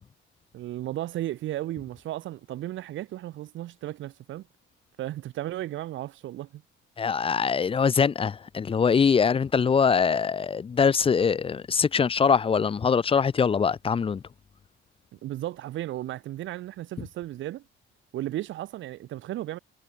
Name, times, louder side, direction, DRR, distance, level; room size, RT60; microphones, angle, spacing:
voice 1, 0.5-4.5 5.0-6.6 15.1-17.6 18.1-19.6, right 14 dB, 65° right, 2.1 m, -34 dB
voice 2, 7.0-14.2, left 6 dB, 25° left, 1.2 m, -23 dB
cardioid pair, 150°, 21 cm